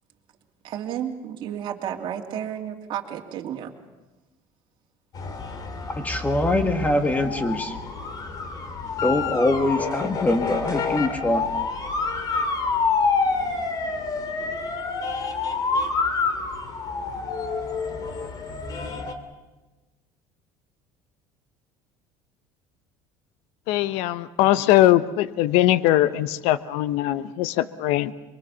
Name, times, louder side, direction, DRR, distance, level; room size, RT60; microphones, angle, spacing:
voice 1, 0.6-3.7, right 9 dB, 50° right, 1 dB, 2.7 m, -32 dB
sound 1, 5.1-19.1, left 4 dB, 40° left, 2.5 m, -28 dB
voice 2, 5.9-7.8 9.0-11.5, left 1 dB, 15° left, 8 dB, 1.7 m, -23 dB
voice 3, 23.7-28.1, left 14 dB, 75° left, 15 dB, 0.9 m, -21 dB
23.5 x 23.0 x 7.1 m, 1.1 s
cardioid pair, 130°, 11 cm